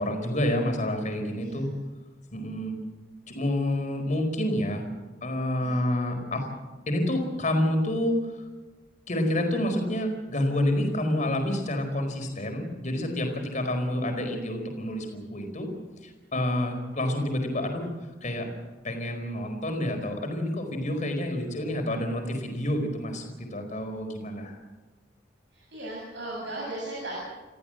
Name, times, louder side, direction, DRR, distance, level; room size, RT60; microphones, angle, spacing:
voice 1, 0.0-1.7 2.3-2.7 3.3-4.9 5.2-6.5 6.9-8.2 9.1-15.7 16.3-17.9 18.2-18.5 18.8-24.5, left 1 dB, 45° left, 4 dB, 4.6 m, -28 dB
voice 2, 1.4-1.7 5.6-5.8 25.5-27.2, right 1 dB, 70° right, -4 dB, 7.8 m, -37 dB
28.5 x 15.0 x 7.8 m, 1.2 s
head